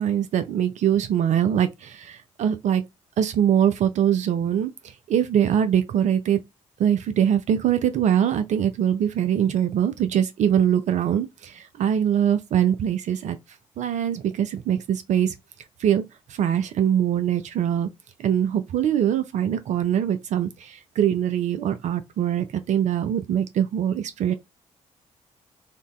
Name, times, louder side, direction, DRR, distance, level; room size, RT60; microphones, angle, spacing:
voice 1, 0.0-2.9 3.2-4.7 5.1-6.4 6.8-13.4 13.8-15.3 15.8-16.0 16.3-17.9 18.2-24.3, right 9 dB, 45° right, 0.4 m, -23 dB
3.8 x 2.1 x 2.3 m
figure-of-eight pair, 40°, 17 cm